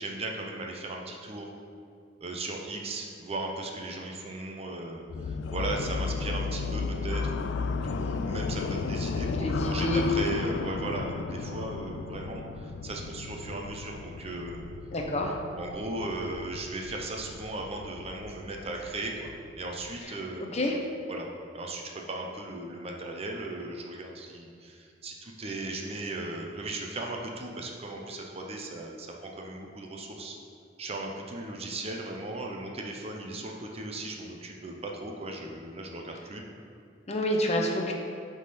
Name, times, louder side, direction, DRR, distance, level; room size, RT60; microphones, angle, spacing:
voice 1, 0.0-1.5 2.2-7.5 7.9-14.6 15.5-20.6 21.1-30.4 30.8-36.4, right 2 dB, 35° right, 1 dB, 0.6 m, -37 dB
sound 1, 5.1-20.0, left 4 dB, 70° left, 0.3 m, -34 dB
voice 2, 9.3-10.0 14.9-15.3 20.5-20.7 37.1-37.9, left 1 dB, 35° left, 1 dB, 0.7 m, -28 dB
8.0 x 3.8 x 4.2 m, 2.4 s
head